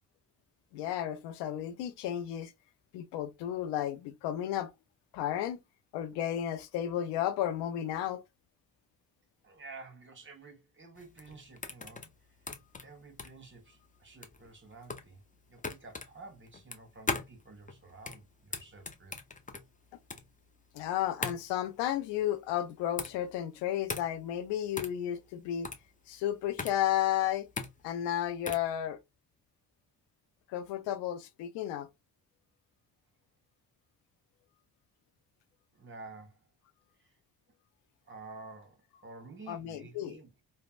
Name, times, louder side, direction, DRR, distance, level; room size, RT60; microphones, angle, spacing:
voice 1, 0.7-2.5 2.9-4.7 5.1-5.6 5.9-8.2 20.7-25.7 26.1-27.5 27.8-29.0 30.5-31.9 39.5-40.2, left 11 dB, 85° left, 0.5 m, -33 dB
voice 2, 9.4-12.1 12.4-12.5 12.8-15.2 15.5-19.2 35.7-36.4 37.0-37.1 38.0-40.4, right 3 dB, 30° right, 1.2 m, -51 dB
sound 1, 11.0-28.7, left 4 dB, 20° left, 0.6 m, -41 dB
3.2 x 2.1 x 2.3 m
supercardioid pair, 45°, 41 cm